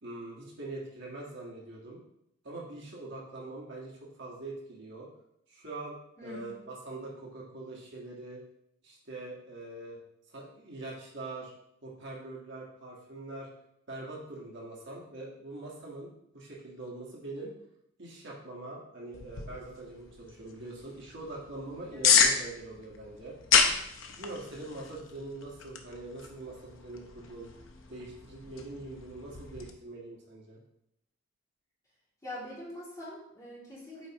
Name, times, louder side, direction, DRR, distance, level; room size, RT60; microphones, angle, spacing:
voice 1, 0.0-2.0 2.4-5.1 5.5-5.9 6.2-8.4 8.8-10.0 10.3-11.5 11.8-13.5 13.9-17.5 18.0-23.4 24.1-27.5 27.9-30.6, right 2 dB, 65° right, -4 dB, 1.5 m, -43 dB
voice 2, 6.2-6.6 21.9-22.1 32.2-34.1, left 1 dB, 15° left, -8 dB, 2.6 m, -43 dB
sound 1, 19.1-29.7, left 6 dB, 75° left, 0.7 m, -31 dB
7.9 x 4.6 x 3.0 m, 0.78 s
head